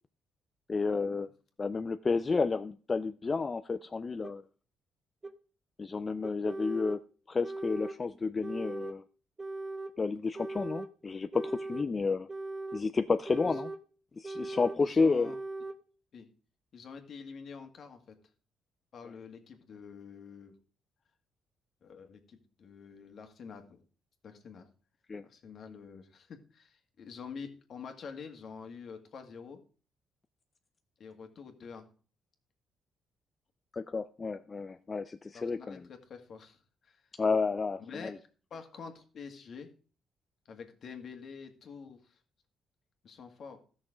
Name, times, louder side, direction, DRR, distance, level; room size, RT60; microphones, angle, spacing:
voice 1, 0.7-1.3 1.6-4.4 5.8-7.0 7.3-9.0 10.0-12.3 12.7-13.7 14.2-15.3 25.1-25.2 33.7-35.8 37.2-38.1, left 4 dB, 30° left, 10 dB, 0.5 m, -31 dB
sound 1, 4.2-4.3 5.2-5.3 6.2-7.0 7.4-8.0 8.4-9.0 9.4-9.9 10.4-10.9 11.3-11.9 12.3-12.9 13.3-13.8 14.2-14.8 15.2-15.8, right 2 dB, 25° right, 0.9 m, -39 dB
voice 2, 14.4-15.4 16.1-16.3 16.7-18.2 18.9-20.6 21.8-23.8 24.2-24.7 25.2-29.6 31.0-31.9 35.3-37.2 37.8-39.7 40.5-42.2 43.0-43.6, left 5 dB, 60° left, 5 dB, 1.9 m, -47 dB
14.0 x 6.3 x 5.0 m, 0.40 s
cardioid pair, 90°, 0 cm